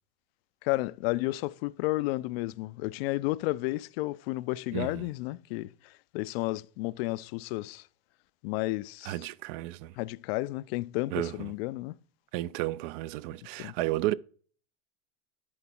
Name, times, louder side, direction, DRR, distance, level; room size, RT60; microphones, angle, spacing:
voice 1, 0.6-7.9 8.4-9.1 10.0-11.9 13.6-13.7, left 20 dB, 60° left, 0.4 m, -32 dB
voice 2, 4.7-5.1 9.0-10.0 11.1-11.5 12.3-14.1, right 16 dB, 50° right, 0.4 m, -32 dB
11.0 x 4.5 x 4.3 m
supercardioid pair, 125°, 34 cm